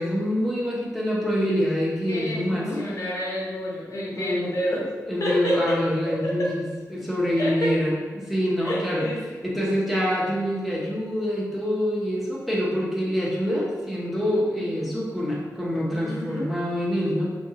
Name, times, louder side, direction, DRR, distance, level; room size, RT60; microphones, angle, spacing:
voice 1, 0.0-2.8 4.2-4.5 5.1-9.1 9.4-17.3, equal, ahead, -6 dB, 0.8 m, -26 dB
voice 2, 2.1-4.9 5.2-5.8 6.2-6.5 7.4-7.7 8.6-9.2 14.6-14.7 16.1-16.5, equal, 55° left, -4 dB, 0.7 m, -28 dB
2.6 x 2.3 x 3.9 m, 1.4 s
wide cardioid pair, 105°, 6 cm